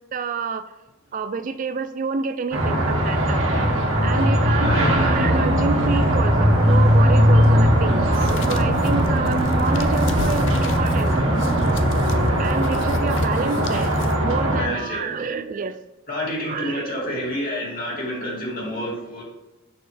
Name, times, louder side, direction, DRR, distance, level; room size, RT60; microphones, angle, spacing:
voice 1, 0.1-0.7 1.1-3.4 4.0-11.2 12.4-13.9 14.2-15.8 16.4-17.3, right 4 dB, 40° right, 11 dB, 0.3 m, -29 dB
sound 1, 2.5-14.6, equal, 75° right, 1.7 m, -20 dB
voice 2, 4.6-4.9 14.6-15.4 16.1-19.2, left 1 dB, 45° left, -4 dB, 2.5 m, -29 dB
sound 2, 4.6-12.4, right 2 dB, 20° right, 0.9 m, -26 dB
sound 3, 8.1-14.2, left 3 dB, 65° left, 0.6 m, -35 dB
6.7 x 6.2 x 3.3 m, 1.0 s
head